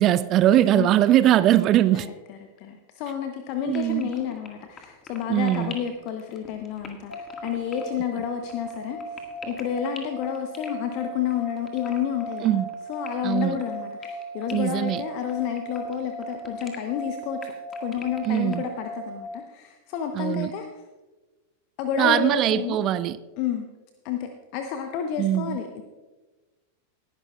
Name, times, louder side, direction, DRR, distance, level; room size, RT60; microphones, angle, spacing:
voice 1, 0.0-2.1 3.6-4.1 5.3-5.8 12.4-12.7 13.2-13.6 14.5-15.0 18.3-18.6 20.1-20.5 22.0-23.2 25.2-25.6, right 12 dB, 35° right, 0.4 m, -21 dB
voice 2, 1.9-12.6 12.9-17.5 17.8-20.7 21.8-22.8 23.4-23.7 24.0-25.8, left 9 dB, 45° left, 0.8 m, -30 dB
sound 1, 3.7-18.7, left 5 dB, 20° left, 1.7 m, -44 dB
sound 2, 7.1-19.2, right 2 dB, 80° left, 1.7 m, -38 dB
19.0 x 11.0 x 2.3 m
figure-of-eight pair, 90°, 0 cm